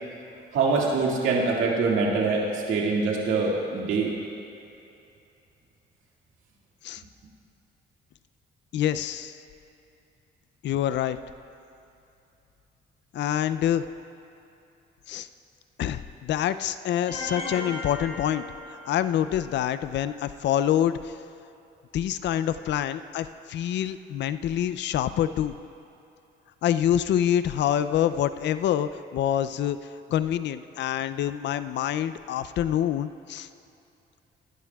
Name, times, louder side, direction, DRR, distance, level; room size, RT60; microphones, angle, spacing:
voice 1, 0.5-4.1, right 4 dB, 80° right, -3 dB, 2.1 m, -24 dB
voice 2, 8.7-9.4 10.6-11.2 13.1-13.8 15.1-15.3 15.8-18.4 18.7-21.2 21.9-25.6 26.6-29.8 30.1-33.5, left 10 dB, 65° left, 13 dB, 0.4 m, -26 dB
sound 1, 17.1-19.2, left 2 dB, 45° left, 2.8 m, -36 dB
20.5 x 11.0 x 2.3 m, 2.8 s
cardioid pair, 90°, 20 cm